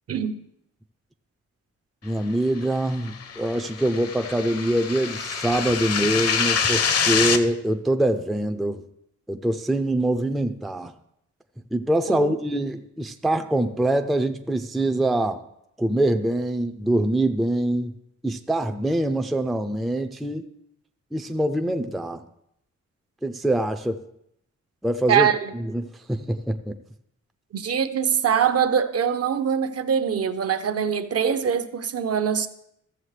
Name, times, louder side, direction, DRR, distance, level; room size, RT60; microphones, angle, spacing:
voice 1, 2.0-8.8 9.3-10.9 11.7-15.4 15.8-18.0 18.2-20.5 21.1-22.2 23.2-24.0 24.8-25.3 25.5-26.8, right 1 dB, ahead, 0.4 m, -24 dB
sound 1, 2.9-7.4, left 6 dB, 55° left, 0.7 m, -25 dB
voice 2, 25.1-25.4 27.5-32.5, right 7 dB, 55° right, 0.7 m, -23 dB
14.5 x 7.1 x 3.2 m
wide cardioid pair, 135°, 29 cm